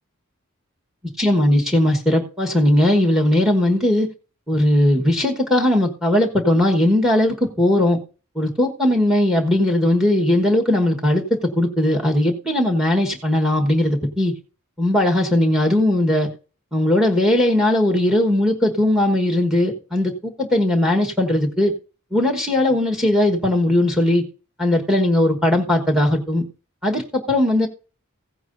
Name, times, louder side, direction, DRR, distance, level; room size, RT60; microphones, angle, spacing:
voice 1, 1.2-4.1 4.5-8.0 8.3-14.3 14.8-16.3 16.7-21.7 22.1-24.2 24.6-26.4 26.8-27.7, left 1 dB, ahead, 3 dB, 1.3 m, -18 dB
15.5 x 9.2 x 2.6 m, 0.34 s
head